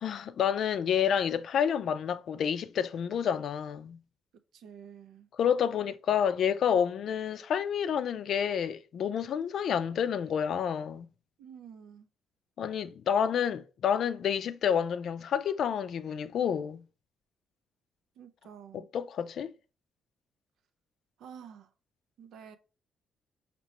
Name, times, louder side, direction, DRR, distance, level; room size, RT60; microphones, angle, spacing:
voice 1, 0.0-4.0 5.4-11.1 12.6-16.8 18.7-19.5, left 8 dB, 65° left, 0.4 m, -29 dB
voice 2, 4.5-5.3 11.4-12.1 18.2-18.9 21.2-21.7 22.2-22.6, right 8 dB, 80° right, 0.6 m, -49 dB
5.2 x 2.9 x 3.0 m
cardioid pair, 90°, 0 cm